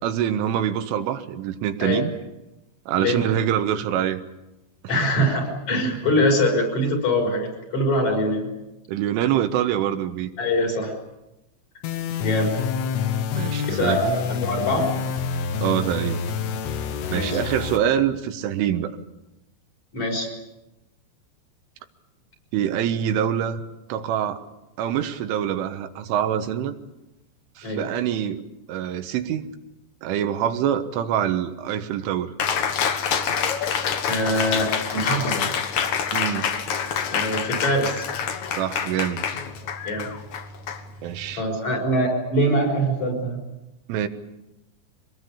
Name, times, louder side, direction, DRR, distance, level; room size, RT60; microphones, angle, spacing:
voice 1, 0.0-2.1 2.9-4.2 8.9-10.3 13.4-14.0 15.6-16.3 17.1-19.0 22.5-23.6 23.9-24.4 24.8-26.8 27.6-28.4 28.7-29.4 30.0-32.3 36.1-36.5 38.5-39.3 41.0-41.4 43.9-44.1, right 10 dB, 85° right, 8 dB, 3.7 m, -25 dB
voice 2, 4.9-8.5 10.4-10.9 12.2-12.6 13.7-14.9 17.1-17.4 19.9-20.3 27.6-27.8 34.0-35.5 37.1-38.1 39.8-40.1 41.3-43.4, equal, 35° left, 1 dB, 6.6 m, -23 dB
sound 1, 11.8-17.8, left 7 dB, 90° left, 4.2 m, -27 dB
Cheering, 32.4-41.3, left 7 dB, 65° left, 1.8 m, -27 dB
25.0 x 20.0 x 8.5 m, 0.95 s
omnidirectional pair, 5.6 m